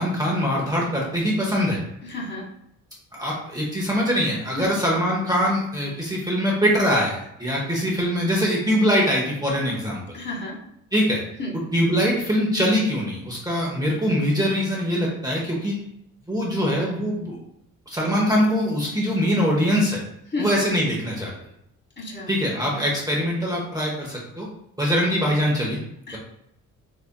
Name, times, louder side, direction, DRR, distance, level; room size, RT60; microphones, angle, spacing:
voice 1, 0.0-1.8 3.1-10.2 10.9-11.2 11.7-15.8 16.3-17.4 17.9-20.0 20.4-21.3 22.3-24.5 24.8-25.8, equal, 10° right, -4 dB, 1.0 m, -23 dB
voice 2, 2.1-2.4 4.5-4.7 10.1-10.5 11.4-11.5 20.3-20.5 22.0-22.3 26.1-26.2, left 2 dB, 35° left, -3 dB, 1.5 m, -31 dB
3.9 x 3.2 x 2.2 m, 0.77 s
supercardioid pair, 70°, 33 cm